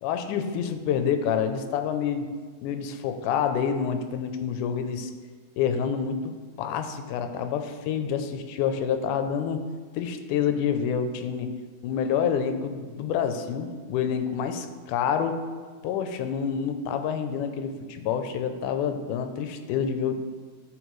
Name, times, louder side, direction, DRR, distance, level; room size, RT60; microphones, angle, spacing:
voice 1, 0.0-2.3 2.6-5.1 5.6-9.6 9.9-11.5 11.8-14.6 14.9-15.4 15.8-20.1, left 7 dB, 85° left, 7 dB, 2.1 m, -27 dB
11.5 x 4.9 x 3.1 m, 1.5 s
omnidirectional pair, 3.6 m